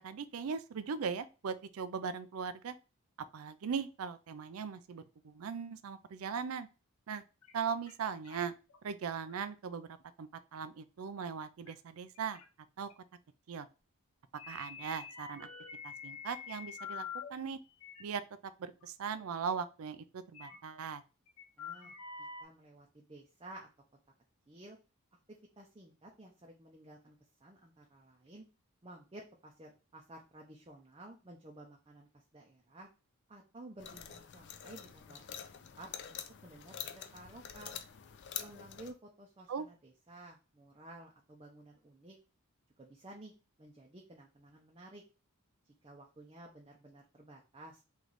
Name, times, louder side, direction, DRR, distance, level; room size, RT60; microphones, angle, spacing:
voice 1, 0.0-2.8 3.3-6.7 7.1-7.2 7.5-8.5 8.8-9.9 10.2-12.4 12.8-12.9 13.5-13.7 14.5-15.5 15.8-17.6 18.0-18.2 18.6-21.0 39.5-39.7, right 6 dB, 70° right, 12 dB, 0.4 m, -39 dB
sound 1, 7.4-7.5 7.9-8.0 8.2-8.8 9.3-9.5 10.0-10.1 11.7-11.8 12.2-12.5 12.9-13.0 14.4-17.3 17.7-18.0 18.8-18.9 19.1-19.2 20.3-20.8 21.3-22.4, left 6 dB, 85° left, 0.9 m, -46 dB
voice 2, 21.6-21.9 22.4-23.7 24.5-24.8 25.6-27.2 27.4-28.4 28.8-32.9 33.3-37.8 38.4-42.2 42.8-43.3 43.6-45.0 45.8-47.8, right 1 dB, 25° right, -1 dB, 0.6 m, -53 dB
sound 2, 33.8-38.9, left 9 dB, 50° left, 0.4 m, -46 dB
3.1 x 3.1 x 3.9 m, 0.31 s
head